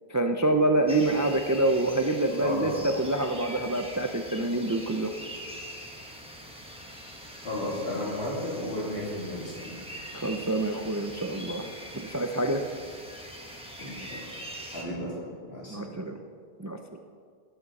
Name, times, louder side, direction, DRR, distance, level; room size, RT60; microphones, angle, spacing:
voice 1, 0.1-5.1 10.1-11.6 11.9-12.6 15.7-16.2 16.6-16.8, right 2 dB, 25° right, 5 dB, 0.4 m, -26 dB
sound 1, 0.9-14.8, equal, 5° right, 1.3 m, -43 dB
voice 2, 2.4-2.7 7.4-9.8 13.8-14.2 14.7-16.0, left 1 dB, 70° left, -5 dB, 3.1 m, -33 dB
18.5 x 7.8 x 4.1 m, 2.1 s
omnidirectional pair, 1.1 m